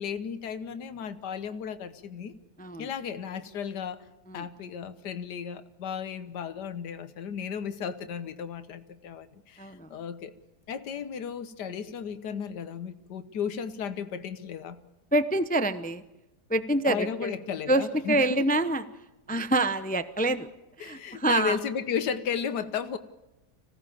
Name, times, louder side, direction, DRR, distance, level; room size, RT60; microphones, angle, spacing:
voice 1, 0.0-2.3 2.8-4.0 4.3-10.3 10.7-14.8 16.9-18.4 20.8-23.0, left 7 dB, 90° left, 10 dB, 1.6 m, -34 dB
voice 2, 2.6-2.9 4.3-4.4 9.6-9.9 15.1-16.0 16.5-17.3 17.7-18.9 19.3-20.5 20.8-21.6, right 2 dB, 10° left, 11 dB, 0.5 m, -26 dB
25.5 x 17.0 x 7.1 m, 0.97 s
omnidirectional pair, 1.7 m